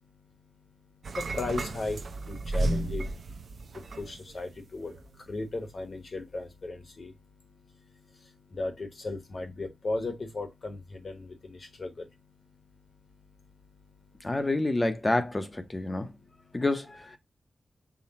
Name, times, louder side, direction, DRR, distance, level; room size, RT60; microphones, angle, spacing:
sound 1, 1.0-4.5 4.8-5.1, right 2 dB, 70° right, 0.5 m, -33 dB
voice 1, 1.3-2.0 2.3-3.1 4.0-4.9 5.3-7.1 8.5-12.1, left 2 dB, 45° left, 1.0 m, -36 dB
voice 2, 14.2-16.1 16.5-17.2, left 2 dB, 20° left, 0.6 m, -28 dB
5.7 x 2.1 x 4.1 m
wide cardioid pair, 170°, 0 cm